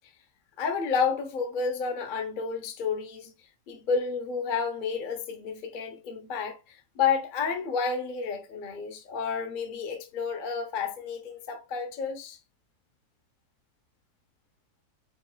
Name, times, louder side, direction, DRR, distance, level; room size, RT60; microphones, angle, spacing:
voice 1, 0.6-3.3 3.7-12.4, left 5 dB, 60° left, 0.5 m, -30 dB
5.2 x 3.4 x 2.2 m
omnidirectional pair, 2.0 m